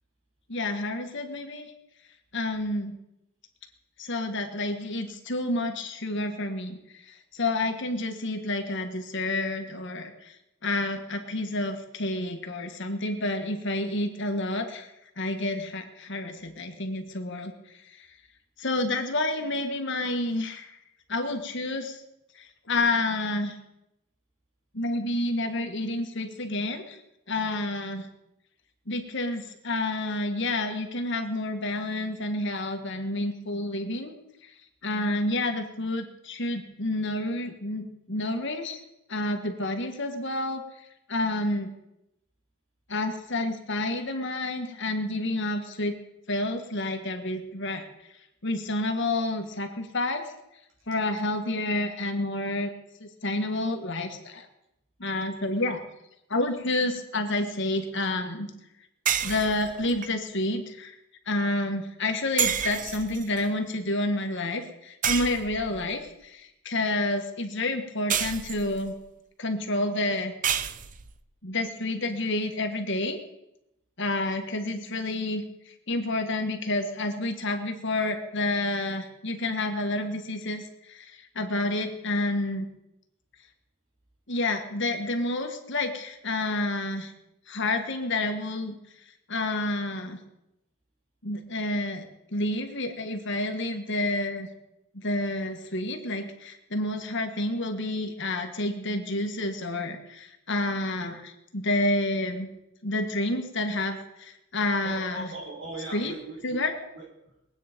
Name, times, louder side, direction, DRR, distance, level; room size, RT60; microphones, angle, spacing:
voice 1, 0.5-1.7 2.3-3.0 4.0-6.8 7.1-10.4 10.6-14.9 15.2-17.5 17.9-18.1 18.6-20.8 21.1-22.0 22.4-23.6 24.7-27.0 27.3-28.1 28.9-34.1 34.4-34.5 34.8-38.8 39.1-40.6 41.1-41.7 42.9-46.0 46.3-47.8 48.4-50.3 50.9-52.7 53.0-54.5 55.0-55.8 56.3-58.5 59.2-61.0 61.3-68.9 69.4-70.3 71.4-73.2 74.0-82.7 84.3-87.1 87.5-88.8 89.3-90.2 91.2-92.1 92.3-94.5 94.9-102.5 102.8-105.2 105.9-106.1 106.4-106.7, left 2 dB, 55° left, 5 dB, 1.8 m, -29 dB
sound 1, 59.0-60.1 62.4-63.4 65.0-65.9 68.1-68.9 70.4-71.2, right 8 dB, 40° right, 0.7 m, -29 dB
voice 2, 104.8-106.7 106.9-107.3, right 2 dB, 65° right, -2 dB, 6.4 m, -39 dB
22.0 x 9.2 x 5.3 m, 0.87 s
head